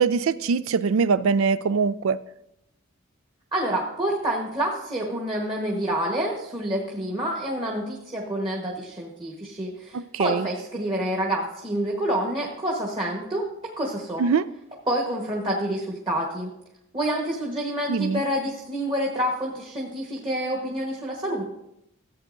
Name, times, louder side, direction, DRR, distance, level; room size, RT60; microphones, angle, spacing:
voice 1, 0.0-2.2 9.9-10.5 14.2-14.5 17.9-18.2, right 5 dB, 75° right, 0.4 m, -22 dB
voice 2, 3.5-14.3 14.9-16.5 16.9-21.4, right 1 dB, 25° right, 1.2 m, -28 dB
14.5 x 8.2 x 2.6 m
head